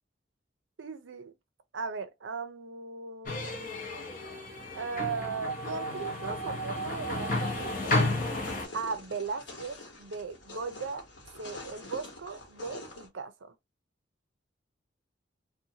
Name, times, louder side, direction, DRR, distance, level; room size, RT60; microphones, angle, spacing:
voice 1, 0.8-1.3 1.7-3.7 4.7-8.0 8.7-11.0 11.4-13.5, right 5 dB, 90° right, 0.5 m, -38 dB
sound 1, 3.3-8.7, left 1 dB, 50° left, 0.8 m, -32 dB
sound 2, 7.8-13.1, left 2 dB, 70° left, 1.1 m, -46 dB
2.6 x 2.2 x 2.7 m
head